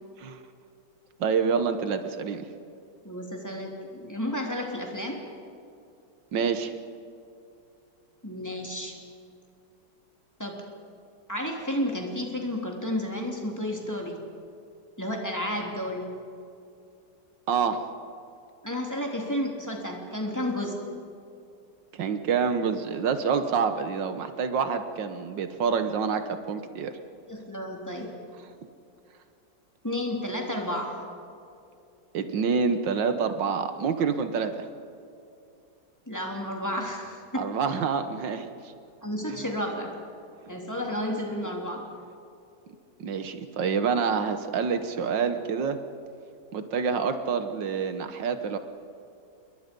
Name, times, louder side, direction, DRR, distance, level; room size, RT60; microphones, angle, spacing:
voice 1, 1.2-2.5 6.3-6.8 17.5-17.9 21.9-26.9 32.1-34.7 37.4-38.5 39.3-39.4 43.0-45.8 46.5-48.6, right 6 dB, 85° right, 9 dB, 1.8 m, -27 dB
voice 2, 3.0-5.2 8.2-9.0 10.4-10.6 11.3-14.2 15.0-16.1 18.6-20.8 27.3-28.1 29.8-31.0 36.1-37.5 39.0-39.9 40.5-41.9, left 1 dB, 10° left, 0 dB, 3.1 m, -31 dB
28.5 x 22.0 x 5.3 m, 2.6 s
omnidirectional pair, 1.9 m